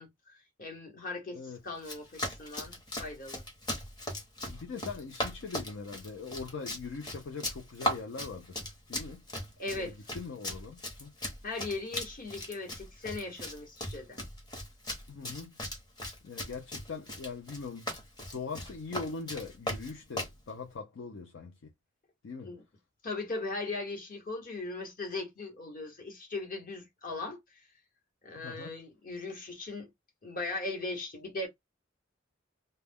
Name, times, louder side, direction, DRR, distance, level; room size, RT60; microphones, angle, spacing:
voice 1, 0.0-3.4 9.6-9.9 11.4-14.2 22.4-22.6 23.0-27.7 28.2-29.9 30.2-31.5, left 3 dB, 45° left, 1.1 m, -39 dB
Run, 1.8-20.4, left 1 dB, 20° left, 0.9 m, -39 dB
voice 2, 4.5-9.2 9.7-11.1 15.1-15.5 16.2-18.0 18.3-21.7 22.2-22.5 28.3-28.8, left 4 dB, 65° left, 0.5 m, -41 dB
2.2 x 2.1 x 3.4 m
head